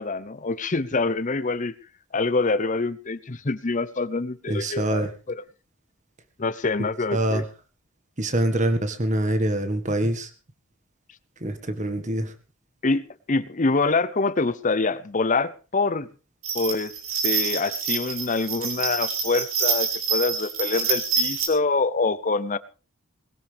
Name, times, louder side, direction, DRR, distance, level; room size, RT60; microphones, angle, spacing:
voice 1, 0.0-1.7 2.1-5.4 6.4-7.4 12.8-16.1 16.5-16.9 17.2-22.6, left 3 dB, 35° left, 16 dB, 0.8 m, -25 dB
voice 2, 4.5-5.1 7.1-7.4 8.2-10.3 11.4-12.3, right 1 dB, 35° right, 8 dB, 1.7 m, -25 dB
sound 1, 16.4-21.5, right 6 dB, 80° right, 4.1 m, -26 dB
20.0 x 17.0 x 3.5 m, 0.35 s
head